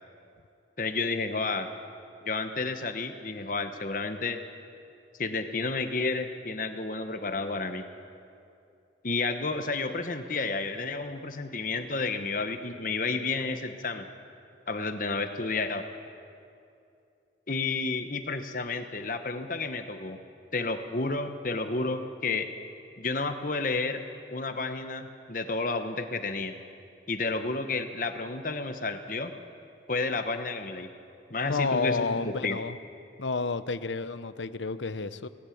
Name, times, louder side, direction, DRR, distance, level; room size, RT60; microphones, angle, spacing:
voice 1, 0.8-1.7 2.2-4.4 5.2-7.8 9.0-14.1 14.7-15.8 17.5-20.2 20.5-22.5 23.0-24.0 24.3-26.5 27.1-29.3 29.9-30.9 31.3-32.6, left 3 dB, 45° left, 7 dB, 1.2 m, -31 dB
voice 2, 31.5-32.8 33.2-35.3, left 4 dB, 85° left, 13 dB, 0.8 m, -30 dB
19.0 x 17.5 x 8.6 m, 2.6 s
head